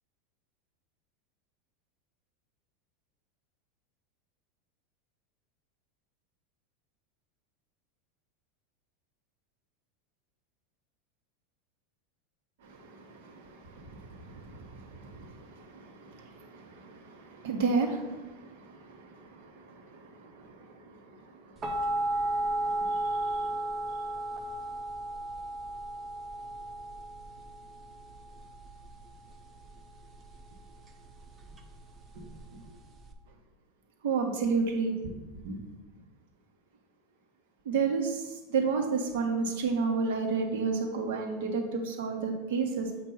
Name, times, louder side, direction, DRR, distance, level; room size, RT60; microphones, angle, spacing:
voice 1, 12.6-23.5 32.1-32.2 32.5-32.6 34.0-34.9 35.4-35.6 37.6-42.9, right 4 dB, 70° right, 2 dB, 1.1 m, -33 dB
sound 1, 21.6-33.1, right 1 dB, 20° right, 0.4 m, -35 dB
7.6 x 2.6 x 5.5 m, 1.1 s
supercardioid pair, 175°, 0 cm